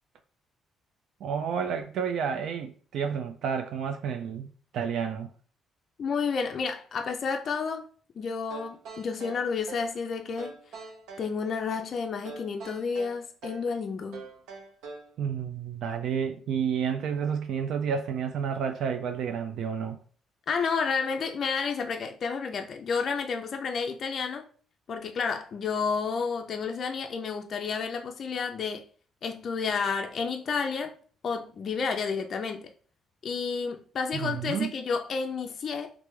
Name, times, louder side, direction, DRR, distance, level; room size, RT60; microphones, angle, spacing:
voice 1, 1.2-5.3 15.2-20.0 34.1-34.7, right 7 dB, 65° right, 0.3 m, -30 dB
voice 2, 6.0-7.8 8.2-10.6 11.2-14.2 20.5-24.5 24.9-28.8 29.2-30.9 31.2-32.7 33.2-35.9, left 5 dB, 45° left, 0.4 m, -31 dB
sound 1, 8.5-10.0 10.4-11.3 12.2-13.7 14.1-15.1, right 4 dB, 85° right, 0.7 m, -43 dB
3.3 x 2.5 x 3.1 m
cardioid pair, 130°, 0 cm